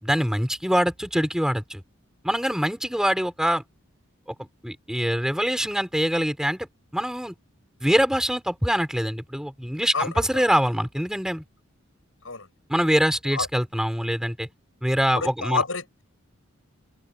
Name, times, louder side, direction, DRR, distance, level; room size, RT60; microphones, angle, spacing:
voice 1, 0.0-1.8 2.2-3.6 4.4-6.7 6.9-7.3 7.8-11.4 12.7-14.5 14.8-15.6, equal, 5° right, 5.1 m, -24 dB
voice 2, 9.9-10.4 12.2-12.5 13.3-13.5 15.1-16.0, left 4 dB, 75° left, 7.2 m, -29 dB
open air
head